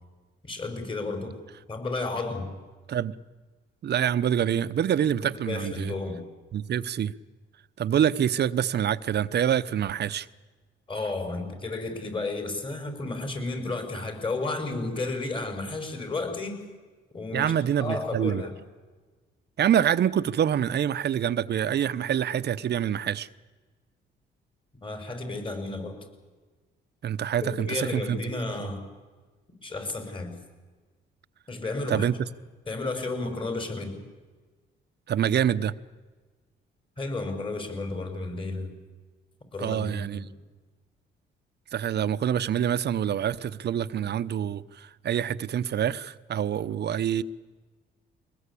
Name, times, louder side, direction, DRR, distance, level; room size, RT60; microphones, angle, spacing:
voice 1, 0.4-1.4 1.7-2.5 5.2-6.2 10.9-16.6 17.1-17.5 17.8-18.5 24.8-26.0 27.4-28.9 29.6-30.4 31.5-32.1 32.7-34.0 37.0-38.7 39.5-40.3, left 3 dB, 25° left, 5.5 m, -32 dB
voice 2, 3.8-5.9 6.5-7.1 7.8-10.3 17.3-18.4 19.6-23.3 27.0-28.2 31.9-32.1 35.1-35.7 39.6-40.3 41.7-47.2, right 9 dB, 55° right, 0.8 m, -26 dB
23.0 x 19.5 x 8.4 m
cardioid pair, 90°, 20 cm